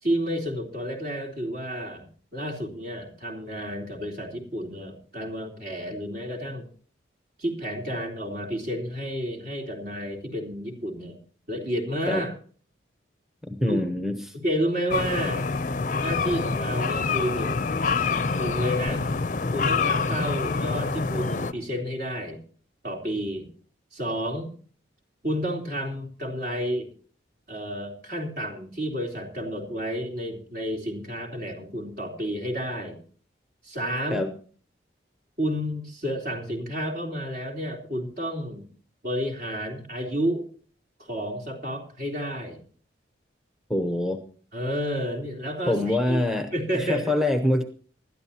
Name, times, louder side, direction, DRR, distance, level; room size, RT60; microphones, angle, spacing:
voice 1, 0.0-6.7 7.4-11.2 11.5-12.3 13.7-13.9 14.3-15.5 16.0-17.7 18.3-19.0 19.5-22.4 22.8-23.5 23.9-24.5 25.2-26.9 27.5-33.0 33.6-34.3 35.4-38.6 39.0-40.4 41.0-42.6 44.5-46.2 46.5-47.3, equal, 55° right, 0 dB, 3.5 m, -30 dB
voice 2, 13.5-14.3 34.1-34.3 43.7-44.2 45.7-47.6, left 1 dB, ahead, 7 dB, 0.8 m, -25 dB
sound 1, 14.9-21.5, left 4 dB, 40° left, 0.5 m, -26 dB
20.0 x 12.5 x 2.9 m, 0.43 s
head